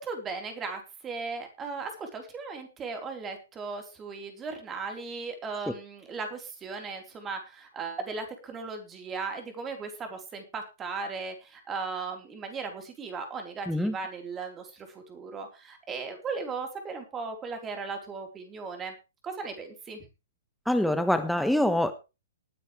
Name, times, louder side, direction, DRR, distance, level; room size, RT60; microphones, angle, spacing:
voice 1, 0.0-18.9 19.2-20.0, right 4 dB, 20° right, 5 dB, 4.0 m, -37 dB
voice 2, 20.7-21.9, left 1 dB, ahead, 8 dB, 1.3 m, -25 dB
20.5 x 9.4 x 3.3 m, 0.29 s
figure-of-eight pair, 120°, 0 cm